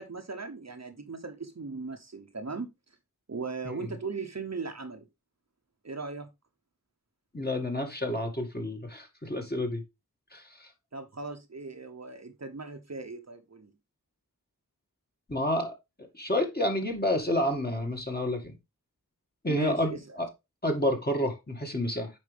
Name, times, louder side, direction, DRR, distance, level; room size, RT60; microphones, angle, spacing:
voice 1, 0.0-2.7 3.3-5.1 5.8-6.3 10.9-13.7 19.5-20.2, right 4 dB, 45° right, 1.0 m, -38 dB
voice 2, 7.3-9.8 10.3-10.7 15.3-15.7 16.1-18.5 19.4-20.3 20.6-22.1, left 1 dB, 25° left, 2.2 m, -29 dB
8.5 x 5.0 x 3.4 m
wide cardioid pair, 65°, 36 cm